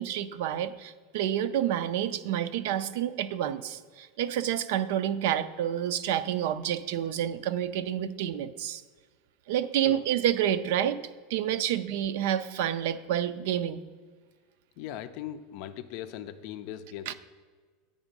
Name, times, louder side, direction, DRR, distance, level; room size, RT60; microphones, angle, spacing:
voice 1, 0.0-8.8 9.5-13.8 17.1-17.2, right 10 dB, 70° right, 13 dB, 0.4 m, -29 dB
voice 2, 14.8-17.1, left 11 dB, 60° left, 9 dB, 0.4 m, -39 dB
8.8 x 3.6 x 5.2 m, 1.5 s
hypercardioid pair, 110°, 0 cm